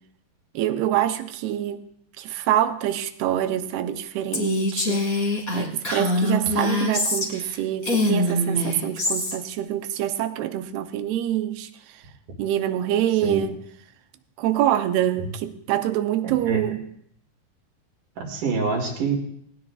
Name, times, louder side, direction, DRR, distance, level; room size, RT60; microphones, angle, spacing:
voice 1, 0.5-1.9 2.2-12.0 12.4-13.6 14.4-16.9, right 12 dB, 85° right, 2.8 m, -25 dB
Female speech woman speaking, 4.3-7.5 7.8-9.4, left 1 dB, 25° left, 2.2 m, -24 dB
voice 2, 16.2-16.6 18.2-19.1, right 4 dB, 60° right, 3.5 m, -26 dB
19.0 x 18.5 x 2.4 m
omnidirectional pair, 4.5 m